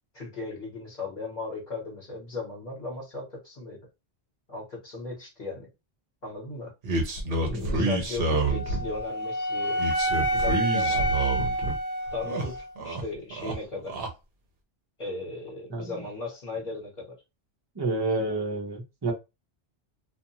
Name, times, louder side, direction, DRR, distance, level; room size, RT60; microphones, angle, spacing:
voice 1, 0.1-3.8 4.5-5.7 6.2-9.8 10.3-11.2 12.1-14.0 15.0-17.1, left 3 dB, 45° left, 1.3 m, -37 dB
sound 1, 6.8-9.0 9.8-11.8 12.1-13.0 13.3-14.1, right 2 dB, 60° right, 0.9 m, -28 dB
voice 2, 7.5-7.9 15.7-16.0 17.8-19.1, right 2 dB, 25° right, 0.7 m, -29 dB
Wind instrument woodwind instrument, 8.5-12.7, right 1 dB, 85° left, 0.9 m, -28 dB
2.5 x 2.4 x 2.8 m
omnidirectional pair, 1.1 m